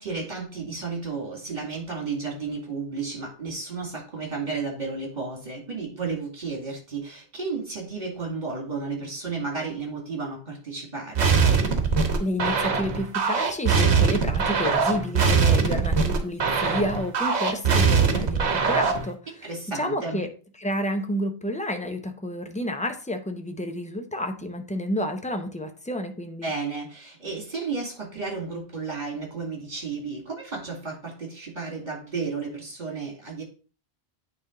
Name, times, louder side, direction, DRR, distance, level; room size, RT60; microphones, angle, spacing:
voice 1, 0.0-11.4 19.4-20.2 26.4-33.4, right 4 dB, 40° right, -1 dB, 2.4 m, -33 dB
sound 1, 11.2-19.1, right 5 dB, 70° right, 1.3 m, -22 dB
voice 2, 12.2-19.5 19.7-20.3 20.6-26.5, equal, 10° left, 5 dB, 0.6 m, -30 dB
9.1 x 3.4 x 3.7 m, 0.36 s
omnidirectional pair, 1.2 m